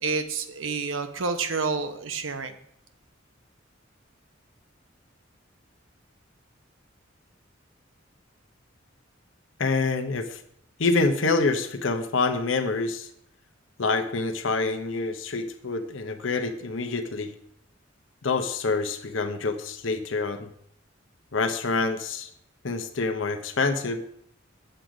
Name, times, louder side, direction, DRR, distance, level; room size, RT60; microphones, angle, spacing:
voice 1, 0.0-2.5, right 4 dB, 85° right, 8 dB, 0.9 m, -29 dB
voice 2, 9.6-10.4 10.8-13.1 13.8-17.3 18.2-20.5 21.3-22.3 22.6-24.0, left 3 dB, 75° left, 7 dB, 0.8 m, -26 dB
7.8 x 7.7 x 5.0 m, 0.71 s
head